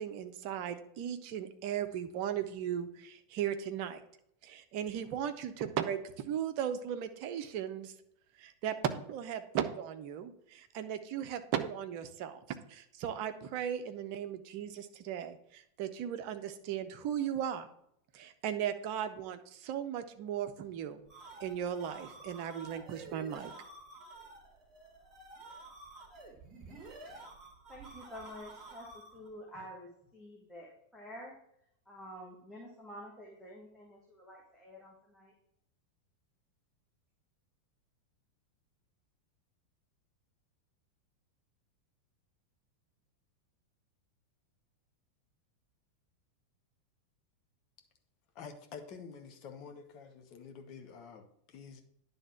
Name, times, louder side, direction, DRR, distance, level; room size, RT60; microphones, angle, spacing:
voice 1, 0.0-4.0 4.4-6.0 6.3-7.9 8.4-12.4 12.7-17.7 18.1-21.0 21.4-23.5, right 9 dB, 45° right, 9 dB, 0.7 m, -37 dB
sound 1, 21.1-29.3, right 2 dB, 20° right, 2.2 m, -51 dB
voice 2, 27.7-28.9 29.1-31.3 31.9-35.3, equal, 5° left, -4 dB, 1.6 m, -49 dB
voice 3, 48.3-51.8, left 6 dB, 40° left, 5 dB, 1.1 m, -48 dB
10.0 x 3.5 x 5.8 m, 0.74 s
figure-of-eight pair, 90°, 0 cm